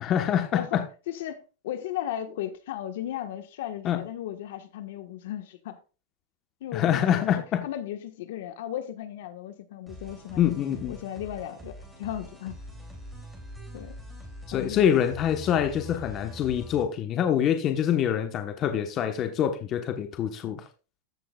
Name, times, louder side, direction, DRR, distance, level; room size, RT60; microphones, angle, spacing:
voice 1, 0.0-0.9 3.8-4.0 6.7-7.6 10.4-11.0 14.5-20.6, left 9 dB, 30° left, 1.2 m, -25 dB
voice 2, 0.5-5.8 6.6-12.6 13.7-14.0 14.5-15.0, left 11 dB, 70° left, 1.4 m, -36 dB
sound 1, 9.9-16.8, equal, 5° right, 2.9 m, -43 dB
14.5 x 6.4 x 2.4 m
supercardioid pair, 155°, 0 cm